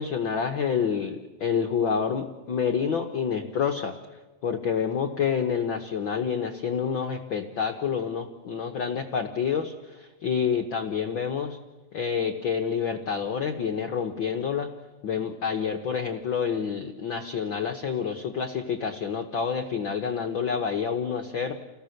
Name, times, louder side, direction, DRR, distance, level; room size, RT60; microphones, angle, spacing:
voice 1, 0.0-3.9 4.4-11.6 11.9-14.7 15.0-21.5, left 7 dB, 70° left, 5 dB, 1.1 m, -28 dB
30.0 x 18.0 x 6.5 m, 1.2 s
omnidirectional pair, 3.7 m